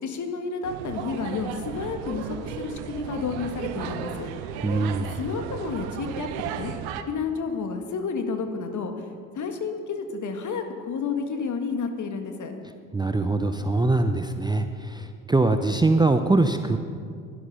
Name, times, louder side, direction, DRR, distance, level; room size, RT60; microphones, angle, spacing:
voice 1, 0.0-4.3 5.1-6.7 7.1-9.1 9.3-12.5, left 5 dB, 45° left, 6 dB, 1.8 m, -31 dB
sound 1, 0.6-7.0, right 9 dB, 75° right, 1.0 m, -35 dB
voice 2, 4.6-5.1 12.9-16.8, right 2 dB, 10° right, 7 dB, 0.7 m, -23 dB
12.0 x 11.0 x 6.5 m, 2.2 s
hypercardioid pair, 65°, 42 cm